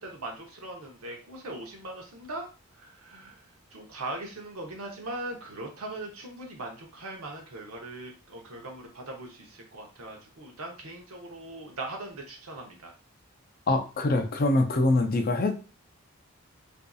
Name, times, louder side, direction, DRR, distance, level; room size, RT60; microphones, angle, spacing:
voice 1, 0.0-2.5 2.7-3.4 3.7-13.0, right 2 dB, 80° right, 2 dB, 0.8 m, -40 dB
voice 2, 13.7-15.5, left 2 dB, 40° left, 6 dB, 0.4 m, -24 dB
2.6 x 2.4 x 2.3 m, 0.34 s
head